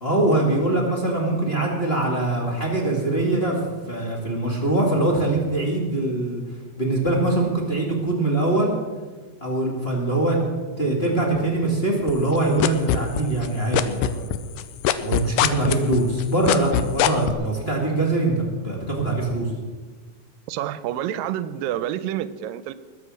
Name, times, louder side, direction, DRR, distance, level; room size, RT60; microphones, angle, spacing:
voice 1, 0.0-6.4 6.8-8.7 9.4-10.4 10.8-14.3 15.0-19.5, right 2 dB, 20° left, 0 dB, 2.1 m, -23 dB
sound 1, 12.1-13.5 13.7-17.3, left 11 dB, 80° left, 2.2 m, -21 dB
voice 2, 20.5-22.7, right 11 dB, 85° right, 15 dB, 2.3 m, -28 dB
20.5 x 7.9 x 6.4 m, 1.4 s
omnidirectional pair, 4.0 m